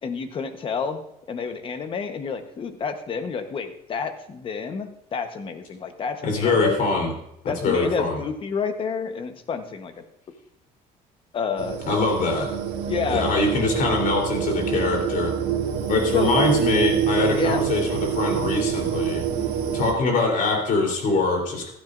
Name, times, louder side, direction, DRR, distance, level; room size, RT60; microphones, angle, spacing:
voice 1, 0.0-1.0 1.3-6.8 7.5-10.0 11.3-11.8 12.9-13.3 16.1-16.3 17.3-17.7, left 5 dB, 35° left, 8 dB, 1.1 m, -29 dB
voice 2, 6.2-7.1 7.4-8.2 11.9-12.5 13.1-15.3 15.9-19.3 19.7-21.7, left 3 dB, 55° left, 1 dB, 3.6 m, -23 dB
sound 1, 11.6-19.9, right 8 dB, 90° right, 1.8 m, -26 dB
15.5 x 12.5 x 2.6 m, 0.78 s
cardioid pair, 145°, 16 cm